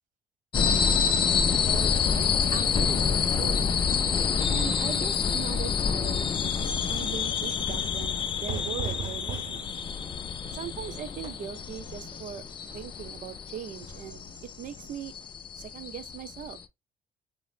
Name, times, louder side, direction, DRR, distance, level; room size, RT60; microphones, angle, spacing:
sound 1, 0.5-16.6, left 6 dB, 30° left, 0.3 m, -28 dB
voice 1, 1.6-2.3 2.5-3.7 4.5-6.6 6.9-9.7 10.5-12.4 12.7-14.2 14.6-15.1 15.5-16.6, right 9 dB, 50° right, 0.4 m, -40 dB
Fire / Fireworks, 8.5-14.0, right 5 dB, 30° right, 0.9 m, -41 dB
3.0 x 2.0 x 2.4 m
cardioid pair, 110°, 17 cm